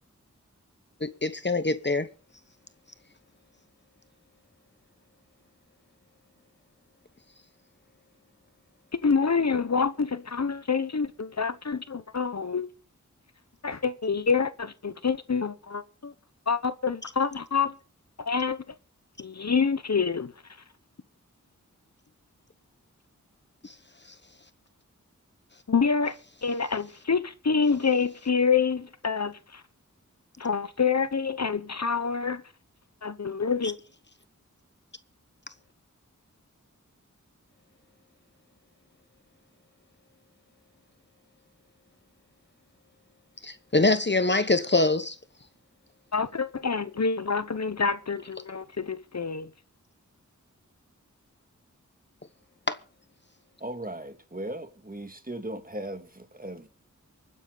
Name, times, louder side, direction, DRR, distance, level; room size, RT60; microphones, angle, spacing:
voice 1, 1.0-2.1 23.6-23.7 43.4-45.2 52.7-52.8, left 2 dB, 35° left, 1.1 m, -24 dB
voice 2, 9.0-12.7 13.6-16.1 16.5-17.8 18.2-18.6 19.2-20.3 25.7-29.6 30.4-32.4 33.0-33.8 46.1-49.5, left 5 dB, 55° left, 1.0 m, -27 dB
voice 3, 53.6-56.7, right 1 dB, 30° right, 2.1 m, -37 dB
24.5 x 9.8 x 4.0 m
wide cardioid pair, 45°, 31 cm